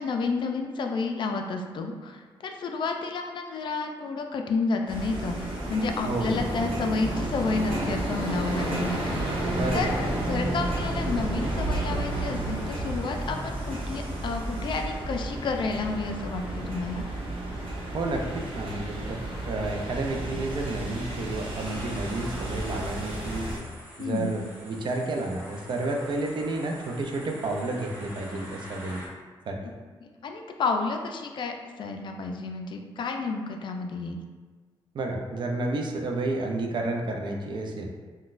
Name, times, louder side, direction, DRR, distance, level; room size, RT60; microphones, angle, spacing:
voice 1, 0.0-17.0 24.0-24.4 30.0-34.2, left 4 dB, 60° left, 4 dB, 0.3 m, -31 dB
sound 1, 4.9-23.6, right 1 dB, 75° right, 0.8 m, -31 dB
voice 2, 6.0-6.4 9.5-10.0 17.9-19.2 19.4-23.5 24.0-29.0 29.5-29.6 34.9-37.9, right 2 dB, 55° right, 2 dB, 0.4 m, -31 dB
sound 2, 21.6-29.1, equal, 25° right, 0.9 m, -45 dB
3.9 x 2.2 x 2.4 m, 1.4 s
cardioid pair, 95°, 9 cm